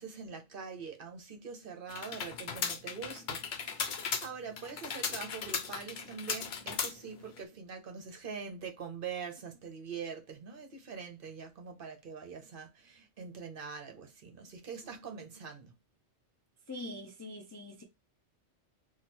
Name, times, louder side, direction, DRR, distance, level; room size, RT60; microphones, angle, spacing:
voice 1, 0.0-15.7, right 6 dB, 50° right, 0.9 m, -44 dB
sound 1, 1.9-7.4, left 6 dB, 65° left, 0.9 m, -37 dB
voice 2, 16.7-17.8, left 1 dB, 30° left, 0.3 m, -43 dB
3.0 x 2.4 x 4.2 m
omnidirectional pair, 1.2 m